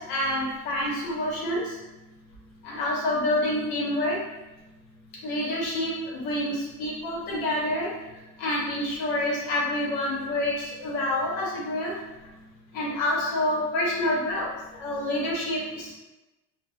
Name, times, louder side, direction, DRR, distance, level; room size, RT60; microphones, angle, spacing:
voice 1, 0.1-1.6 2.6-4.2 5.2-7.9 8.4-10.5 10.8-11.9 12.7-14.5 14.8-15.9, left 1 dB, 80° left, -4 dB, 0.9 m, -27 dB
2.6 x 2.1 x 2.2 m, 1.0 s
cardioid pair, 110°, 36 cm